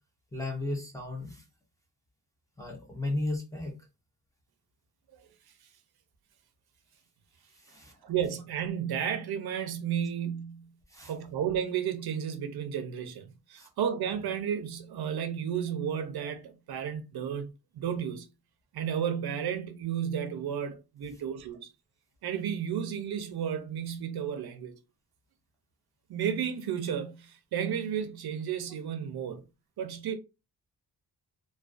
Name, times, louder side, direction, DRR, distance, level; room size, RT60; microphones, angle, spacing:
voice 1, 0.3-1.4 2.6-3.7 7.6-8.0 10.9-11.1 13.6-13.7, left 2 dB, 10° left, 0.5 m, -35 dB
voice 2, 8.0-10.7 11.0-17.5 17.7-18.3 18.7-21.7 22.2-24.8 26.1-29.4 29.8-30.2, right 8 dB, 70° right, 0.5 m, -33 dB
2.3 x 2.2 x 2.4 m
wide cardioid pair, 160°, 39 cm